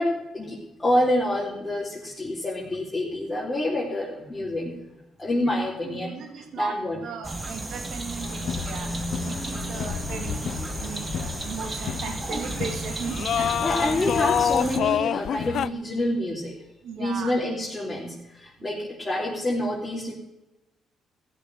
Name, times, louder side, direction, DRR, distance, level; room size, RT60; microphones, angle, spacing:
voice 1, 0.0-4.7 5.2-6.1 6.6-7.0 12.3-12.4 13.6-16.6 17.0-20.1, left 1 dB, 20° left, -5 dB, 3.3 m, -27 dB
voice 2, 5.4-8.9 9.2-14.0 16.8-17.4 18.6-18.9, right 6 dB, 75° right, 5 dB, 2.4 m, -37 dB
sound 1, 7.2-14.8, right 2 dB, 25° right, 1.7 m, -33 dB
sound 2, 8.2-15.7, left 9 dB, 65° left, 0.5 m, -29 dB
15.5 x 7.0 x 7.8 m, 0.96 s
cardioid pair, 90°, 0 cm